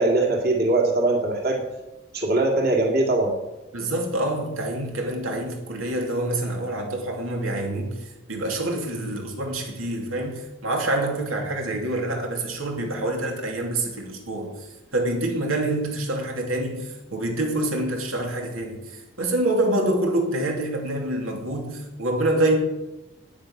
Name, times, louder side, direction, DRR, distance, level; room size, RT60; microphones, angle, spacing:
voice 1, 0.0-1.6 2.1-3.3, right 2 dB, 50° right, 2.2 m, -21 dB
voice 2, 3.7-14.7 14.9-22.6, right 1 dB, 90° right, 2.7 m, -26 dB
10.0 x 9.3 x 7.8 m
head